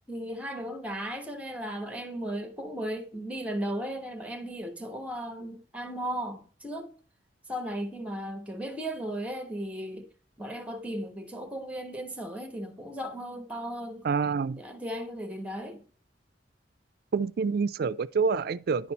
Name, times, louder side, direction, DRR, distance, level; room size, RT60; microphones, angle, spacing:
voice 1, 0.1-7.0 7.5-10.1 10.4-14.1 14.6-15.8, equal, 10° right, 1.1 m, -36 dB
voice 2, 14.0-14.6 17.1-18.9, right 5 dB, 60° right, 0.4 m, -27 dB
10.5 x 4.4 x 4.0 m
head